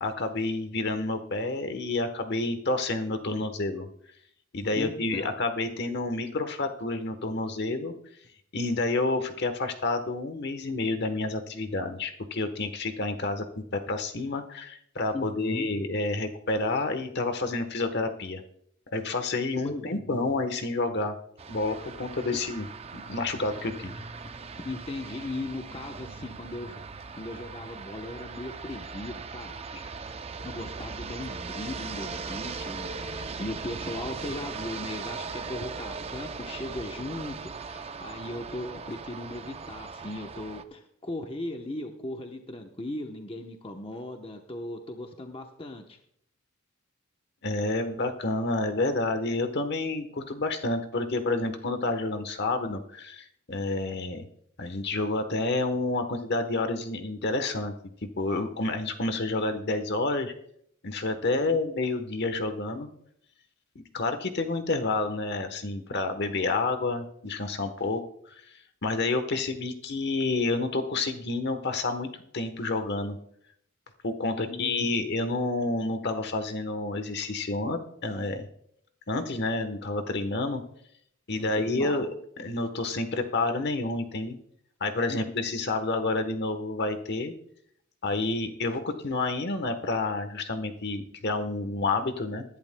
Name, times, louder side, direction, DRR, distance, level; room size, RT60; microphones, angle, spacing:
voice 1, 0.0-3.9 4.5-7.9 8.5-18.4 18.9-21.2 21.5-22.7 22.9-23.9 47.4-54.2 54.6-57.7 58.2-60.3 60.8-62.9 63.9-68.0 68.3-68.4 68.8-73.2 74.0-78.5 79.1-80.6 81.3-82.1 82.4-84.4 84.8-87.3 88.0-92.4, left 2 dB, 50° left, 8 dB, 1.1 m, -29 dB
voice 2, 4.8-5.3 15.1-15.7 19.6-20.2 24.6-26.8 27.1-29.8 30.4-46.0 61.3-61.6 74.2-74.8 81.4-82.1 85.1-85.2, left 1 dB, 25° left, 4 dB, 0.9 m, -38 dB
sound 1, 21.4-40.6, right 4 dB, 30° right, 0.5 m, -39 dB
20.0 x 11.0 x 2.2 m, 0.70 s
head